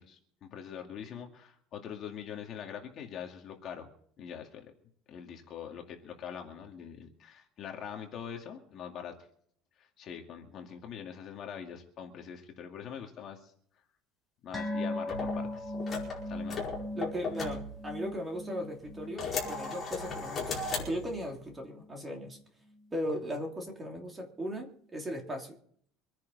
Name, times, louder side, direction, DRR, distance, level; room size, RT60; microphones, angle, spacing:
voice 1, 0.0-3.9 4.2-4.7 5.1-9.1 9.8-13.5 14.4-15.7 16.3-16.6, left 8 dB, 35° left, 3 dB, 2.2 m, -43 dB
sound 1, 14.5-21.3 21.6-21.8 22.2-22.3, left 1 dB, 5° left, 3.2 m, -39 dB
sound 2, 15.1-18.4 18.8-21.4, left 4 dB, 20° left, 4.9 m, -37 dB
voice 2, 16.9-22.4 22.9-25.5, equal, 15° right, 1 dB, 3.1 m, -37 dB
25.0 x 10.5 x 4.1 m, 0.62 s
cardioid pair, 165°, 0 cm